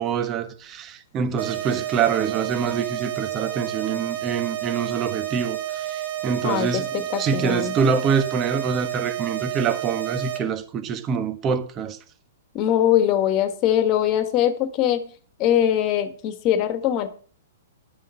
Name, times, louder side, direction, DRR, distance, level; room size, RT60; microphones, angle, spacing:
voice 1, 0.0-6.9 7.2-12.0, right 6 dB, 25° right, 1.5 m, -25 dB
sound 1, 1.4-10.4, right 12 dB, 70° right, 2.5 m, -30 dB
voice 2, 6.4-7.7 12.5-15.1 15.4-17.1, left 11 dB, 35° left, 1.7 m, -22 dB
11.0 x 6.7 x 5.7 m
hypercardioid pair, 125°, 0 cm